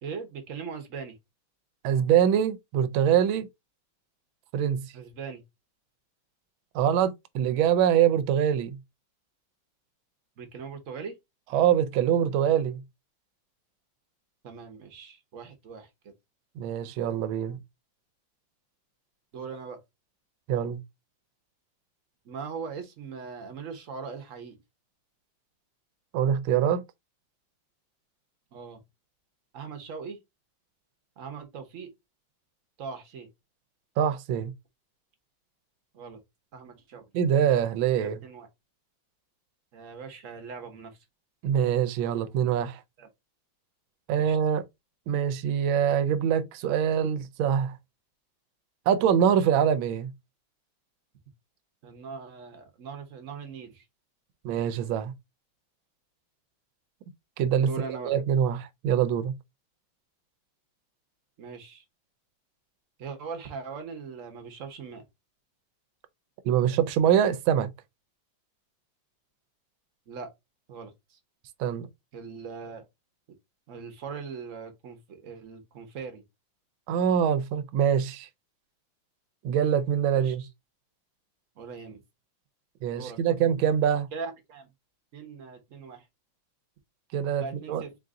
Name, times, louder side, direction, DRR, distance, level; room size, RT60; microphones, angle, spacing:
voice 1, 0.0-1.2 4.9-5.4 10.4-11.2 14.4-16.1 19.3-19.8 22.2-24.6 28.5-28.8 29.5-30.2 31.2-31.9 32.8-33.3 35.9-36.2 36.5-37.1 38.0-38.5 39.7-41.0 43.0-43.1 44.2-44.4 49.3-49.4 51.8-53.8 57.6-58.1 61.4-61.8 63.0-65.0 70.1-70.3 70.7-71.2 72.1-72.9 73.7-76.2 80.1-80.5 81.6-82.0 82.9-83.4 84.1-84.7 85.1-86.0 87.4-88.0, right 5 dB, 50° right, 1.1 m, -40 dB
voice 2, 1.8-3.5 4.5-4.9 6.7-8.8 11.5-12.8 16.6-17.6 20.5-20.8 26.1-26.8 34.0-34.5 37.1-38.2 41.4-42.8 44.1-44.6 45.1-47.8 48.9-50.1 54.4-55.1 57.4-57.7 58.0-59.3 66.4-67.7 71.6-71.9 76.9-78.3 79.4-80.4 82.8-84.1 87.1-87.8, right 9 dB, 85° right, 1.4 m, -24 dB
4.1 x 2.5 x 3.5 m
omnidirectional pair, 2.1 m